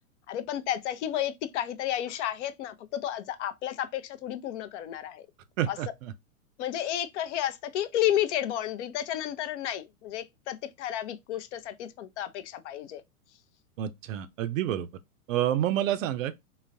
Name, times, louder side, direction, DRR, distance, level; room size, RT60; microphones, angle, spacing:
voice 1, 0.3-5.3 5.7-5.8 6.6-13.0, left 11 dB, 55° left, 0.5 m, -32 dB
voice 2, 5.6-6.1 13.8-14.9 15.3-16.4, right 11 dB, 65° right, 0.6 m, -28 dB
3.8 x 2.0 x 2.6 m
hypercardioid pair, 105°, 44 cm